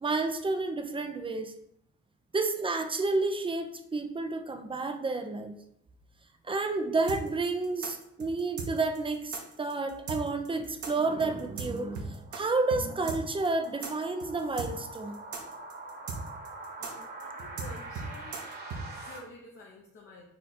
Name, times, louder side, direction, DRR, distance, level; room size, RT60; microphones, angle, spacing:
voice 1, 0.0-1.5 2.3-5.6 6.4-15.2, right 3 dB, 20° right, 7 dB, 0.4 m, -30 dB
sound 1, 7.1-12.4 12.7-12.8 13.1-18.8, right 4 dB, 75° right, 0.9 m, -38 dB
sound 2, 10.6-19.2, right 2 dB, 35° right, 1.2 m, -45 dB
voice 2, 16.8-18.4 18.9-20.2, left 1 dB, 45° left, -2 dB, 0.9 m, -50 dB
4.3 x 2.4 x 4.1 m, 0.74 s
cardioid pair, 90°, 30 cm